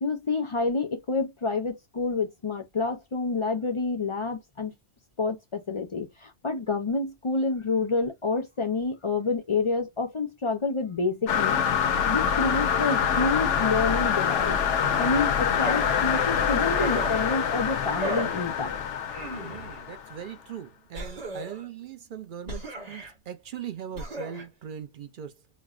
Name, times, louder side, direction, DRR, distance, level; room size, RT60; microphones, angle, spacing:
voice 1, 0.0-4.7 5.2-11.6 12.1-14.6 15.0-18.8, left 3 dB, 45° left, 0.4 m, -28 dB
sound 1, 11.3-20.2, left 7 dB, 80° left, 0.9 m, -25 dB
sound 2, 15.6-16.0 16.8-17.4 18.0-18.4 19.1-19.8 20.9-21.6 22.5-23.1 23.9-24.4, right 1 dB, 35° right, 1.0 m, -35 dB
voice 2, 19.5-25.4, right 9 dB, 60° right, 0.6 m, -40 dB
5.1 x 2.0 x 2.4 m
omnidirectional pair, 1.2 m